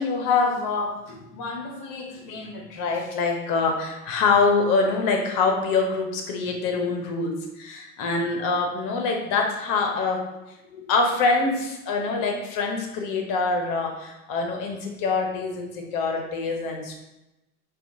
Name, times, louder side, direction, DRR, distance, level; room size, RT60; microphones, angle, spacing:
voice 1, 0.0-10.4 10.7-17.0, left 4 dB, 45° left, 2 dB, 0.8 m, -25 dB
4.1 x 2.4 x 2.7 m, 0.95 s
hypercardioid pair, 90°, 45 cm